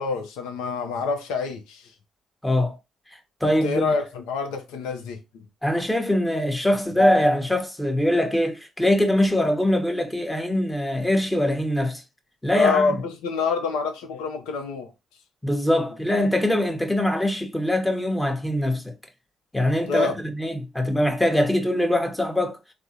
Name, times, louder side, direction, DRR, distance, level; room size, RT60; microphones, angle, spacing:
voice 1, 0.0-1.9 3.6-5.4 12.5-14.9 19.9-20.2, left 4 dB, 80° left, 0.6 m, -26 dB
voice 2, 2.4-2.8 3.4-3.9 5.6-12.0 12.4-13.0 15.4-18.9 19.5-22.6, left 1 dB, 10° left, 0.9 m, -22 dB
3.5 x 2.0 x 2.8 m
hypercardioid pair, 50°, 0 cm